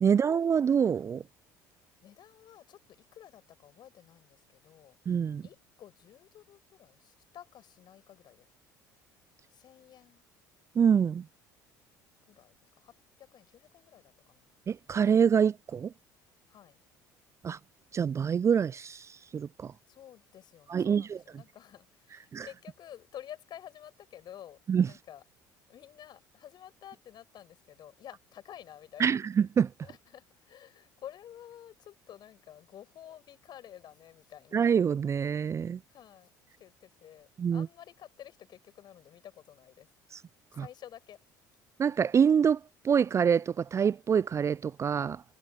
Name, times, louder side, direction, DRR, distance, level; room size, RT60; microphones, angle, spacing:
voice 1, 0.0-1.2 5.1-5.4 10.8-11.2 14.7-15.9 17.4-17.6 17.9-19.7 20.7-21.2 22.3-22.5 24.7-24.9 29.0-29.7 34.5-35.8 37.4-37.7 40.1-40.2 40.6-40.7 41.8-42.6 42.8-45.2, right 7 dB, 30° right, 0.5 m, -26 dB
voice 2, 2.0-5.0 5.4-8.5 9.5-10.2 12.3-14.5 16.5-16.8 19.9-25.2 25.7-29.2 29.8-34.6 35.9-36.3 36.6-39.9 40.5-41.2, left 11 dB, 45° left, 7.2 m, -51 dB
figure-of-eight pair, 60°, 10 cm